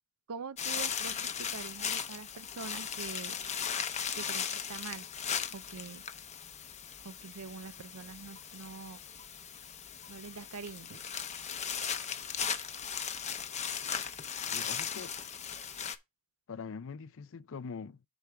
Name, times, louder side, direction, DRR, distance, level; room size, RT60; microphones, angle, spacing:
voice 1, 0.3-3.4 4.1-5.1 5.5-6.0 7.0-9.0 10.1-11.0, right 5 dB, 85° right, 0.7 m, -44 dB
sound 1, 0.6-16.0, left 7 dB, 30° left, 0.8 m, -37 dB
voice 2, 14.5-15.1 16.5-18.0, left 5 dB, 65° left, 0.5 m, -43 dB
8.0 x 5.9 x 3.5 m
head